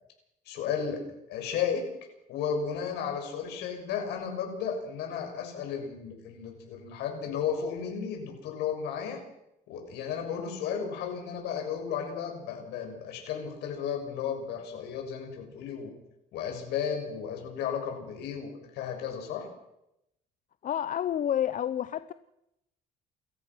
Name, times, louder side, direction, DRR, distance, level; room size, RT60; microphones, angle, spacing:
voice 1, 0.4-1.0 1.3-1.8 2.3-9.2 9.7-15.9 16.3-19.5, left 7 dB, 85° left, 3 dB, 6.9 m, -34 dB
voice 2, 20.6-22.1, left 10 dB, 50° left, 13 dB, 0.8 m, -29 dB
28.5 x 14.5 x 6.3 m, 0.83 s
cardioid pair, 110°, 17 cm